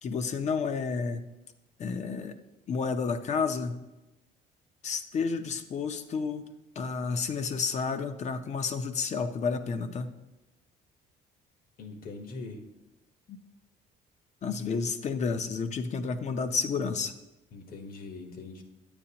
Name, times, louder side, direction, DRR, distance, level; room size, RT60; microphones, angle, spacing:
voice 1, 0.0-1.2 1.8-2.3 2.7-3.8 4.8-6.4 6.8-10.1 13.3-13.4 14.4-17.1, left 5 dB, 45° left, 10 dB, 0.6 m, -30 dB
voice 2, 11.8-12.6 17.5-18.6, left 3 dB, 60° left, 5 dB, 1.2 m, -42 dB
9.2 x 8.7 x 2.9 m, 1.0 s
cardioid pair, 110°, 17 cm